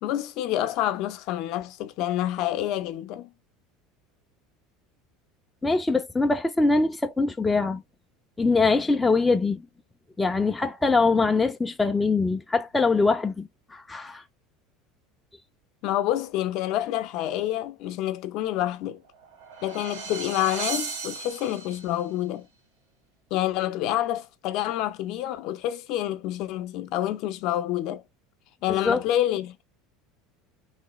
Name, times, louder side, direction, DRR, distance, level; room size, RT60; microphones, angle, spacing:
voice 1, 0.0-3.3 15.8-19.0 19.6-22.5 23.3-28.0 28.6-29.6, left 13 dB, 60° left, 0.6 m, -28 dB
voice 2, 5.6-7.8 8.4-9.6 10.2-14.2 28.7-29.0, left 3 dB, 10° left, 0.4 m, -23 dB
sound 1, 19.0-22.0, right 5 dB, 85° right, 1.6 m, -35 dB
3.2 x 2.3 x 3.0 m
supercardioid pair, 130°, 0 cm